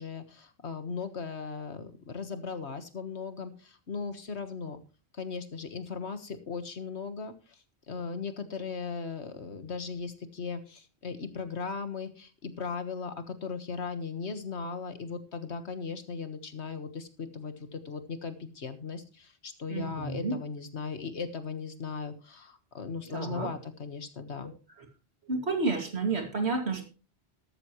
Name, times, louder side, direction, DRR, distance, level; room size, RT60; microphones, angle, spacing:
voice 1, 0.0-4.8 5.1-24.5, left 5 dB, 80° left, 9 dB, 1.8 m, -38 dB
voice 2, 19.7-20.4 23.0-23.5 24.4-24.9 25.3-26.9, right 3 dB, 75° right, 5 dB, 2.7 m, -31 dB
13.5 x 13.0 x 3.1 m, 0.32 s
omnidirectional pair, 1.1 m